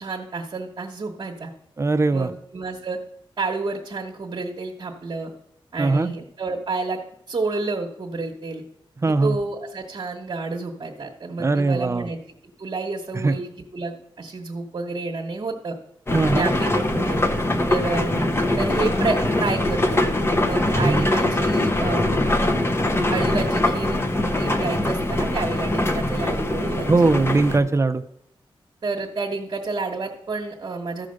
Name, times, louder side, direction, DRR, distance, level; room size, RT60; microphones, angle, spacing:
voice 1, 0.0-1.5 2.1-3.0 3.4-5.3 5.7-7.0 7.3-8.6 9.1-12.2 12.6-15.8 16.3-17.2 17.7-20.0 20.4-22.3 23.1-24.0 24.3-27.2 28.8-31.1, right 3 dB, 50° right, -1 dB, 1.1 m, -30 dB
voice 2, 1.8-2.3 5.8-6.1 9.0-9.4 11.4-12.1 13.1-13.4 16.1-16.5 20.8-21.1 26.8-28.0, right 3 dB, 30° right, 9 dB, 0.5 m, -20 dB
sound 1, 16.1-27.6, left 1 dB, 25° left, 0.9 m, -22 dB
13.5 x 5.0 x 6.5 m, 0.75 s
wide cardioid pair, 115°, 9 cm